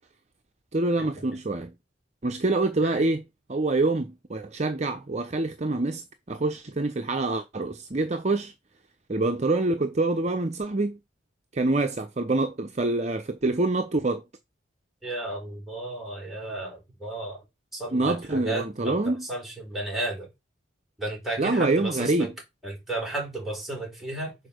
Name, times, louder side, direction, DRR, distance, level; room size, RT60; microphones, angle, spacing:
voice 1, 0.7-1.7 2.2-3.2 3.5-8.5 9.1-11.0 11.5-14.2 17.9-19.3 21.4-22.3, right 2 dB, 35° right, 0.7 m, -26 dB
voice 2, 15.0-17.4 17.7-20.3 21.0-22.3 22.6-24.4, right 2 dB, ahead, 4.1 m, -33 dB
6.7 x 4.4 x 6.5 m
head